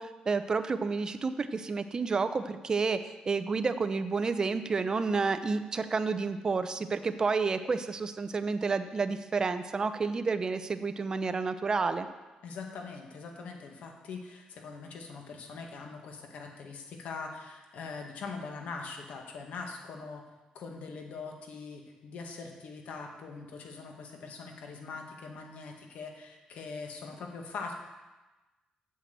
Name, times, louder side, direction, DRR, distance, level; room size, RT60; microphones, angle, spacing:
voice 1, 0.0-3.0 3.3-12.1, right 4 dB, 30° right, 10 dB, 0.7 m, -30 dB
voice 2, 12.4-20.2 20.5-27.7, left 4 dB, 75° left, 2 dB, 1.8 m, -42 dB
8.2 x 7.6 x 7.6 m, 1.1 s
cardioid pair, 135°, 2 cm